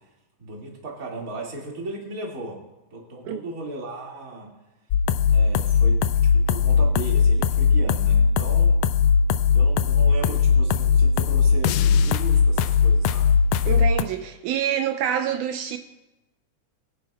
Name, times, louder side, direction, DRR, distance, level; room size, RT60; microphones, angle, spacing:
voice 1, 0.4-2.6 2.9-4.5 5.3-8.8 9.5-13.4, right 2 dB, 30° right, -2 dB, 2.3 m, -36 dB
sound 1, 4.9-14.0, left 6 dB, 80° left, 1.5 m, -19 dB
voice 2, 13.7-15.8, right 9 dB, 80° right, 6 dB, 2.1 m, -26 dB
22.0 x 10.5 x 2.3 m, 1.0 s
omnidirectional pair, 3.5 m